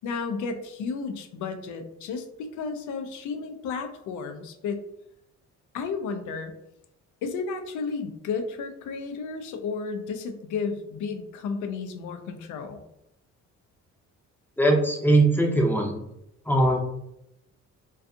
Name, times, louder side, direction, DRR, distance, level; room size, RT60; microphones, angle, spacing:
voice 1, 0.0-4.8 5.7-6.5 7.2-12.8, left 5 dB, 75° left, 7 dB, 0.5 m, -33 dB
voice 2, 14.6-16.0 16.5-16.8, right 1 dB, 5° left, 1 dB, 0.5 m, -20 dB
2.4 x 2.3 x 2.6 m, 0.82 s
cardioid pair, 90°, 30 cm